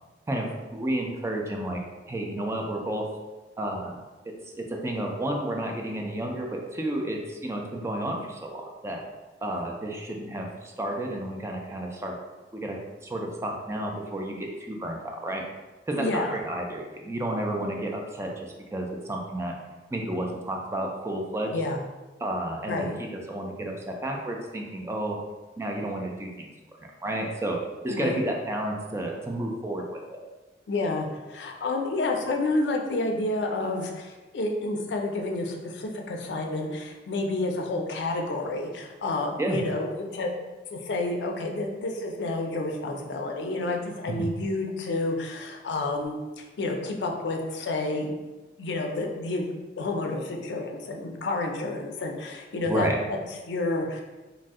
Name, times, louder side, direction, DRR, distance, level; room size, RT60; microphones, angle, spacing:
voice 1, 0.3-1.8 2.1-3.1 3.6-4.0 4.6-9.0 9.4-12.1 12.5-15.4 15.9-19.5 19.9-21.6 22.2-25.2 25.6-26.5 27.0-27.6 27.8-30.2 39.4-39.6 44.1-44.3 52.7-53.0, right 1 dB, 15° right, 0 dB, 0.3 m, -31 dB
voice 2, 15.9-16.4 21.5-21.8 22.7-22.9 27.9-28.2 30.7-40.3 40.7-48.2 48.6-49.5 49.8-53.2 53.5-54.0, left 2 dB, 75° left, 2 dB, 0.4 m, -29 dB
2.6 x 2.0 x 3.5 m, 1.2 s
head